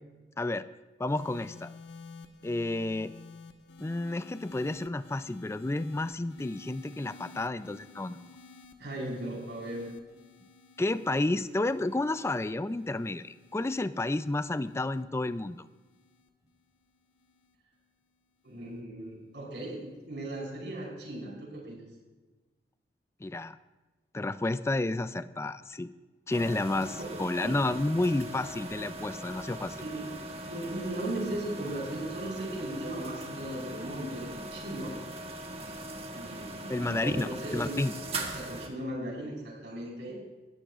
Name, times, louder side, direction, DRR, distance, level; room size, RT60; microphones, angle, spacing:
voice 1, 1.0-1.7 2.4-3.1 3.8-8.3 10.8-15.7 23.2-23.6 24.1-25.9 26.3-29.8 36.7-37.9, left 2 dB, 15° left, 13 dB, 0.3 m, -31 dB
sound 1, 1.1-17.6 18.5-18.8, left 4 dB, 85° left, 1.2 m, -53 dB
voice 2, 8.8-9.9 18.4-21.8 26.8-27.6 29.8-35.0 36.1-37.8 38.3-40.2, right 1 dB, 80° right, -3 dB, 4.7 m, -37 dB
sound 2, 26.3-38.7, right 2 dB, 35° right, 1.3 m, -41 dB
20.0 x 14.5 x 2.5 m, 1.2 s
head